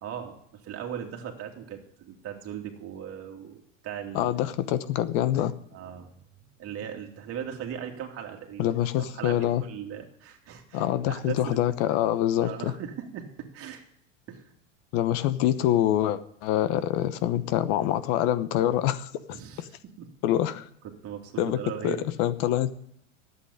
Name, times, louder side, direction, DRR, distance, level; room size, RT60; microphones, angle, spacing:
voice 1, 0.0-4.3 5.7-11.6 12.4-13.8 14.3-14.5 19.3-19.6 20.0-20.1 21.0-22.1, right 9 dB, 35° right, 3 dB, 2.6 m, -39 dB
voice 2, 4.1-5.5 8.6-9.6 10.7-12.7 14.9-19.7 20.2-20.6 21.4-22.7, left 12 dB, 50° left, 13 dB, 1.1 m, -25 dB
11.5 x 8.5 x 9.8 m, 0.71 s
hypercardioid pair, 110°, 38 cm